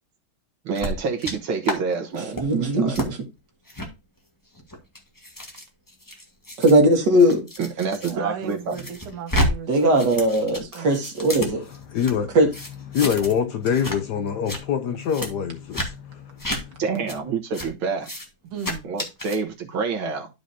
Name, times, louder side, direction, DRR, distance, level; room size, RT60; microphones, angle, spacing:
sound 1, 0.7-1.3 1.6-1.8 2.1-2.4 2.9-3.1 3.7-3.9 4.5-8.1 8.5-9.5 9.8-12.1 12.5-13.4 13.6-14.0 14.3-14.6 15.1-15.3 15.7-15.9 16.4-16.6 17.1-17.2 17.5-17.7 18.0-18.3 18.6-19.4, equal, 10° left, 1.3 m, -30 dB
voice 1, 0.7-2.4 2.7-3.0 7.6-8.9 16.8-18.1 18.8-20.3, right 5 dB, 70° right, 2.1 m, -27 dB
voice 2, 2.3-3.2 6.6-7.5 9.7-11.6 12.3-12.5, right 1 dB, 55° right, 2.3 m, -19 dB
voice 3, 8.1-10.0 10.5-11.0 18.5-18.9, right 7 dB, 90° right, 2.0 m, -35 dB
voice 4, 11.6-12.4 12.9-16.8, left 8 dB, 70° left, 1.1 m, -25 dB
12.0 x 5.0 x 2.7 m
omnidirectional pair, 2.3 m